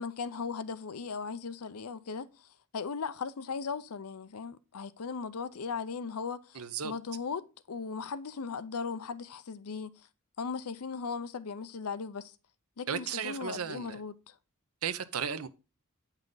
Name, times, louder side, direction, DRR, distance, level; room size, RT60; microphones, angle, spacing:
voice 1, 0.0-10.0 10.4-12.3 12.8-14.4, left 5 dB, 80° left, 0.6 m, -38 dB
voice 2, 6.5-6.9 12.9-14.0 14.8-15.5, right 7 dB, 70° right, 0.8 m, -35 dB
9.1 x 5.6 x 3.9 m
head